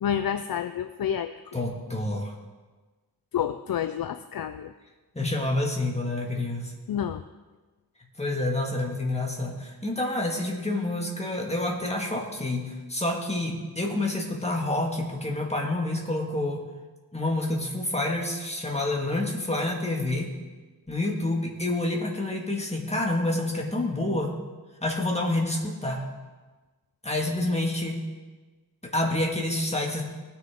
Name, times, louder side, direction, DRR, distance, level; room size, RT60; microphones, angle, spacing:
voice 1, 0.0-1.3 3.3-4.7 6.9-7.2, left 9 dB, 65° left, 10 dB, 0.5 m, -29 dB
voice 2, 1.5-2.3 5.1-6.7 8.2-16.6 17.1-20.3 20.9-24.3 24.8-26.1 27.0-28.0 28.8-30.0, left 2 dB, 15° left, -1 dB, 1.9 m, -28 dB
19.5 x 6.8 x 3.8 m, 1.3 s
wide cardioid pair, 105°, 38 cm